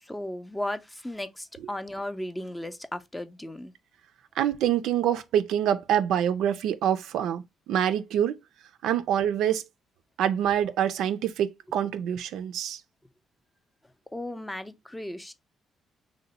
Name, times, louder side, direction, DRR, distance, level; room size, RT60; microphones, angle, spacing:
voice 1, 0.0-3.7 14.1-15.3, left 1 dB, 10° left, 0.4 m, -35 dB
voice 2, 4.4-8.4 8.8-9.6 10.2-12.8, right 10 dB, 85° right, 0.3 m, -26 dB
2.8 x 2.1 x 3.9 m
cardioid pair, 90°, 0 cm